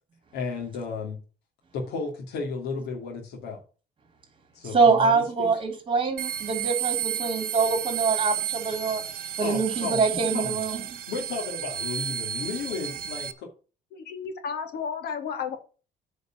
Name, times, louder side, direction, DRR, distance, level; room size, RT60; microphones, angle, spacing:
voice 1, 0.3-1.2 1.7-3.6 4.5-5.5 9.4-10.0 10.3-10.8 11.1-13.5, left 4 dB, 85° left, 2.7 m, -33 dB
voice 2, 4.7-9.0 9.4-10.8, right 4 dB, 30° right, 3.6 m, -24 dB
sound 1, 6.2-13.3, right 11 dB, 60° right, 1.5 m, -32 dB
voice 3, 13.9-15.6, left 6 dB, 70° left, 2.5 m, -33 dB
9.3 x 5.1 x 7.4 m
cardioid pair, 110°, 17 cm